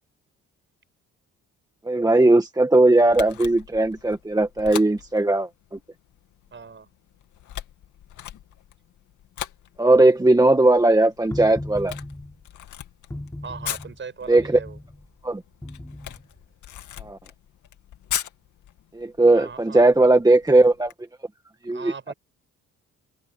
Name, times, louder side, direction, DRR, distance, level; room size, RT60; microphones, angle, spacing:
voice 1, 1.8-5.8 9.8-11.9 14.3-14.6 15.2-15.4 17.0-17.2 18.9-20.9 21.6-22.1, right 2 dB, 10° right, 1.5 m, -18 dB
Camera, 3.1-20.9, left 11 dB, 75° left, 2.6 m, -40 dB
voice 2, 6.5-6.9 13.4-14.8 19.3-20.2 21.7-22.1, right 5 dB, 40° right, 6.3 m, -39 dB
sound 1, 11.3-12.4 13.1-14.0 14.4-15.0 15.6-16.3, left 1 dB, 10° left, 5.6 m, -36 dB
open air
cardioid pair, 90°, 30 cm